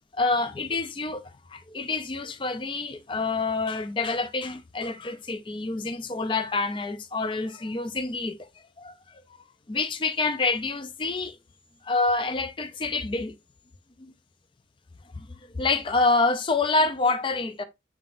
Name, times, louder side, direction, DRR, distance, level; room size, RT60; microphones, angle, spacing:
voice 1, 0.1-8.5 8.8-9.2 9.7-11.4 11.8-13.3 14.0-14.1 15.2-17.6, left 3 dB, 25° left, 0.4 m, -27 dB
5.8 x 3.7 x 2.5 m
head